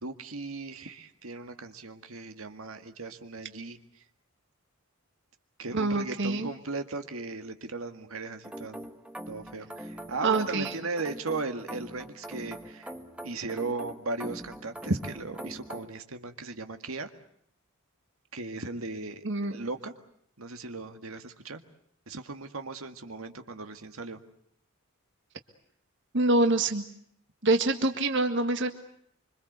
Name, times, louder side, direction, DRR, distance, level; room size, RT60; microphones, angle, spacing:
voice 1, 0.0-4.0 5.6-8.9 9.3-12.9 13.2-17.1 18.3-19.2 19.5-19.9 20.4-21.6 22.1-24.2, right 3 dB, 75° right, 7 dB, 1.9 m, -37 dB
voice 2, 5.7-6.5 10.2-10.8 19.2-19.6 26.1-26.8 27.4-28.7, right 2 dB, 60° right, 6 dB, 1.8 m, -25 dB
sound 1, 8.4-15.8, right 1 dB, 5° right, 1.6 m, -42 dB
26.0 x 25.5 x 8.1 m, 0.68 s
head